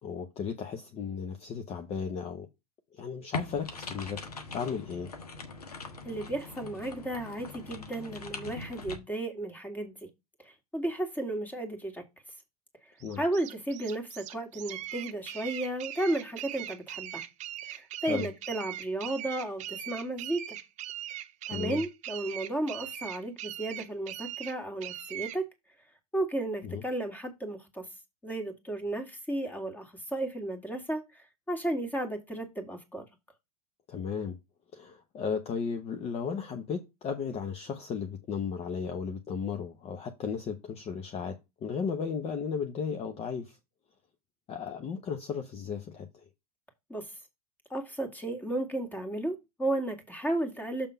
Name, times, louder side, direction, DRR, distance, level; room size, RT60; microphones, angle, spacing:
voice 1, 0.0-2.5 2.9-5.1 13.0-13.2 18.1-18.3 21.5-21.8 26.6-26.8 33.9-34.4 34.7-43.6 44.5-46.1, left 6 dB, 35° left, 0.9 m, -35 dB
sound 1, 3.3-9.0, left 3 dB, 90° left, 1.3 m, -41 dB
voice 2, 6.0-9.9 10.4-12.0 13.2-17.2 17.7-20.6 21.5-25.5 26.1-27.9 28.2-33.1 46.9-47.1 47.7-50.9, right 1 dB, 10° left, 2.0 m, -34 dB
sound 2, 13.0-25.4, right 12 dB, 40° right, 0.8 m, -40 dB
6.9 x 3.6 x 5.6 m
hypercardioid pair, 95°, 19 cm